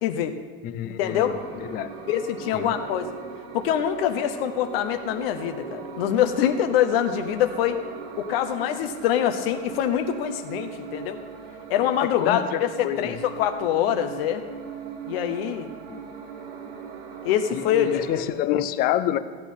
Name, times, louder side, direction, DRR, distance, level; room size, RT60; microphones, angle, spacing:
voice 1, 0.0-0.3 0.8-1.4 2.1-3.1 3.5-7.8 8.2-11.2 11.7-14.4 15.1-15.7 17.2-18.0, left 10 dB, 75° left, 7 dB, 0.8 m, -24 dB
voice 2, 0.6-1.3 1.7-1.9 2.5-2.7 12.0-13.2 15.9-16.0 17.5-19.2, left 12 dB, 30° left, 13 dB, 0.5 m, -27 dB
sound 1, 1.0-18.3, right 5 dB, 75° right, 2.1 m, -39 dB
15.0 x 8.4 x 5.6 m, 1.5 s
supercardioid pair, 165°, 30 cm